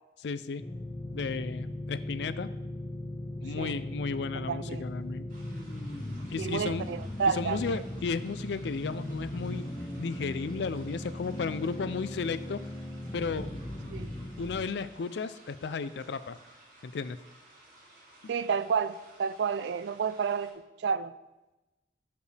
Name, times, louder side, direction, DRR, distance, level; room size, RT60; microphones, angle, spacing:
voice 1, 0.2-0.6 1.1-2.5 3.4-5.3 6.3-6.9 7.3-9.7 10.0-12.6 13.1-13.5 14.4-16.4 16.8-17.2 18.2-18.3, left 4 dB, 75° left, 14 dB, 0.4 m, -34 dB
sound 1, 0.6-14.6, left 1 dB, 25° left, 0.6 m, -38 dB
voice 2, 4.3-4.8 6.4-7.8 13.9-14.1 18.3-20.5 20.8-21.1, right 6 dB, 80° right, 14 dB, 0.3 m, -30 dB
sound 2, 5.3-20.5, right 1 dB, 50° right, 2.4 m, -56 dB
11.5 x 5.2 x 3.3 m, 1.0 s
head